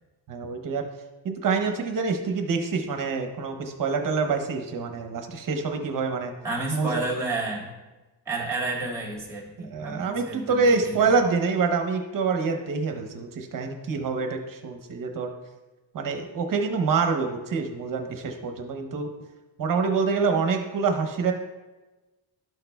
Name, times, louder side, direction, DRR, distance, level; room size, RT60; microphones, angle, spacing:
voice 1, 0.3-0.8 1.2-6.3 6.7-7.0 9.6-15.3 15.9-19.1 19.6-21.3, right 4 dB, 45° right, 4 dB, 0.8 m, -26 dB
voice 2, 6.4-7.7 8.3-10.9, right 2 dB, 5° right, -3 dB, 1.7 m, -31 dB
12.0 x 6.5 x 2.2 m, 1.2 s
cardioid pair, 175°, 47 cm